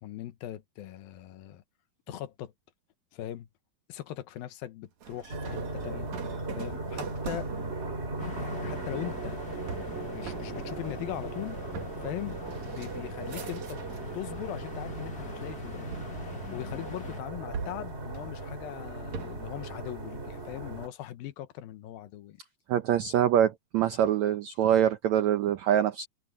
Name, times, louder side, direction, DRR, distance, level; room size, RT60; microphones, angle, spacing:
voice 1, 0.0-1.6 2.1-2.5 3.1-3.5 3.9-6.1 6.5-7.5 8.3-9.4 10.0-11.6 12.0-12.4 12.7-15.9 16.2-22.4, left 13 dB, 75° left, 2.7 m, -40 dB
sound 1, 5.0-14.2 14.5-15.2 15.9-17.0 17.5-19.6, right 6 dB, 55° right, 2.9 m, -43 dB
sound 2, 5.3-20.9, right 2 dB, 20° right, 2.7 m, -38 dB
sound 3, 8.2-17.2, left 5 dB, 35° left, 1.7 m, -45 dB
voice 2, 22.7-26.1, right 10 dB, 80° right, 1.6 m, -24 dB
omnidirectional pair, 4.3 m